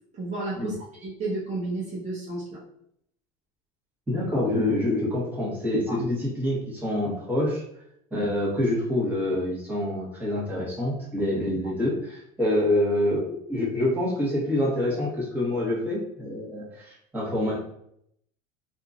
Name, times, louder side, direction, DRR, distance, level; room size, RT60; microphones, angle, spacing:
voice 1, 0.1-0.7 1.0-2.6 5.9-6.0, right 2 dB, 40° right, -6 dB, 0.9 m, -31 dB
voice 2, 4.1-7.6 8.1-17.6, left 1 dB, 10° right, -6 dB, 1.2 m, -26 dB
2.8 x 2.6 x 2.5 m, 0.72 s
supercardioid pair, 110°, 18 cm